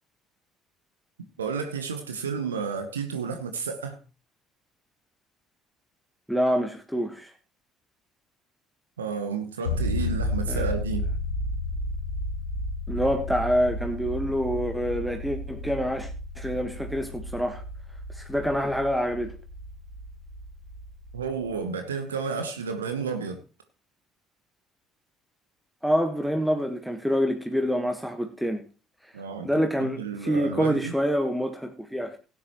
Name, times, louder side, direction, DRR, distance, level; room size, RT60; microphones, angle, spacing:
voice 1, 1.4-4.0 9.0-11.1 21.1-23.4 29.1-30.9, right 5 dB, 80° right, 1.0 m, -31 dB
voice 2, 6.3-7.3 10.5-10.7 12.9-16.1 16.4-17.6 18.1-19.3 25.8-28.6 29.0-32.2, equal, ahead, 1.4 m, -26 dB
sound 1, 9.7-21.6, left 1 dB, 80° left, 1.1 m, -33 dB
17.0 x 9.7 x 3.0 m
figure-of-eight pair, 55°, 0 cm